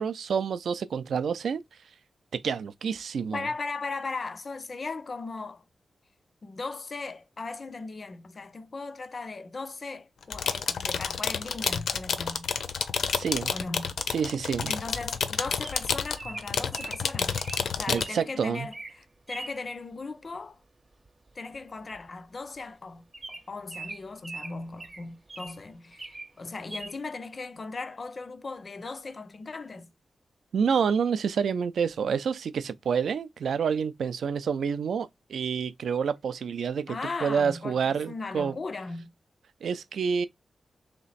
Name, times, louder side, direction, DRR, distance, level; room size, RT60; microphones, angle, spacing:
voice 1, 0.0-1.6 2.3-3.4 13.1-13.5 14.1-14.7 17.9-18.7 30.5-38.5 39.6-40.3, right 6 dB, 85° right, 0.5 m, -28 dB
voice 2, 3.3-5.6 6.4-12.5 13.5-13.9 14.7-17.4 17.7-20.6 21.4-29.9 36.9-39.1, left 3 dB, 35° left, 0.4 m, -38 dB
sound 1, 10.2-18.0, left 6 dB, 85° left, 0.5 m, -30 dB
Bird vocalization bird call bird song, 15.6-18.2 18.6-19.0 19.3-19.6 21.0-21.3 21.5-21.6 21.9-22.1 22.5-22.6 23.1-25.6 25.9-26.3 26.7-26.9, right 3 dB, 20° right, 0.6 m, -41 dB
3.2 x 3.0 x 4.0 m
wide cardioid pair, 165°, 0 cm